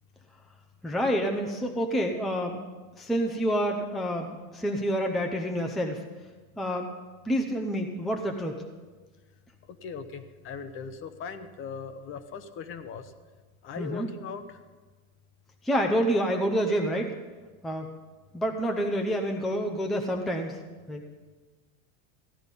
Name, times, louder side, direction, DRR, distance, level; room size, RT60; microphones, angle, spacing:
voice 1, 0.8-2.6 3.0-6.0 6.6-6.9 7.2-8.6 13.8-14.1 15.6-17.1 17.6-17.9 18.3-20.6 20.9-21.1, equal, ahead, 2 dB, 0.6 m, -28 dB
voice 2, 9.8-13.1 13.6-14.6, left 5 dB, 30° left, 11 dB, 0.8 m, -39 dB
15.0 x 9.9 x 5.3 m, 1.3 s
supercardioid pair, 140°, 43 cm